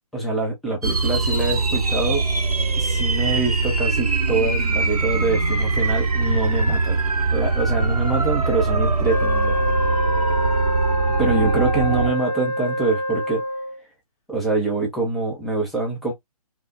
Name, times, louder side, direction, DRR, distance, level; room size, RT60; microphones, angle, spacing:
voice 1, 0.1-2.2 2.8-7.0 7.3-9.7 11.2-13.4 14.3-16.1, right 3 dB, ahead, 0.4 m, -24 dB
sound 1, 0.8-12.1, right 3 dB, 80° right, 0.7 m, -22 dB
Wind instrument woodwind instrument, 9.0-13.8, left 1 dB, 20° left, 0.9 m, -26 dB
5.3 x 2.0 x 2.4 m
figure-of-eight pair, 140°, 19 cm